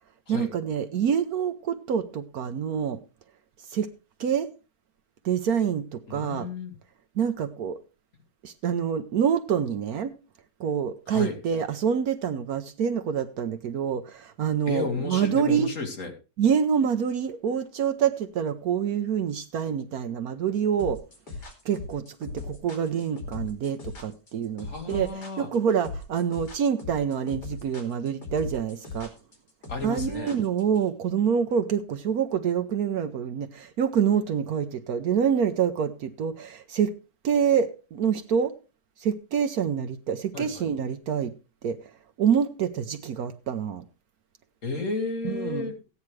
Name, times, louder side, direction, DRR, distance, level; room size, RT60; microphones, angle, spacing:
voice 1, 0.3-3.0 3.7-3.9 4.2-4.5 5.2-6.5 7.2-7.8 8.4-10.1 10.6-15.7 16.4-21.0 21.6-25.1 25.4-29.1 29.8-36.9 37.2-38.5 39.0-41.3 41.6-41.8 42.2-43.8 45.2-45.7, right 7 dB, 65° right, 1.1 m, -26 dB
voice 2, 6.1-6.8 11.1-11.4 14.7-16.1 24.6-25.5 29.7-30.4 40.3-40.7 44.6-45.7, left 3 dB, 45° left, 2.2 m, -32 dB
sound 1, 20.8-30.8, left 3 dB, 70° left, 3.2 m, -38 dB
15.0 x 9.5 x 3.2 m
omnidirectional pair, 1.9 m